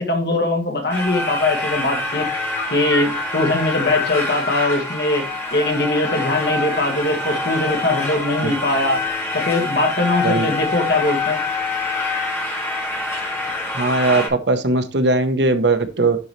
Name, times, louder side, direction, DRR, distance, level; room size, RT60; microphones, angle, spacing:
voice 1, 0.0-2.3 2.7-5.2 5.5-9.0 9.3-11.4, left 2 dB, 65° left, 1.9 m, -21 dB
sound 1, 0.9-14.3, left 3 dB, 15° left, 2.1 m, -25 dB
voice 2, 13.7-16.2, right 2 dB, 80° right, 0.9 m, -19 dB
11.0 x 4.0 x 3.1 m
head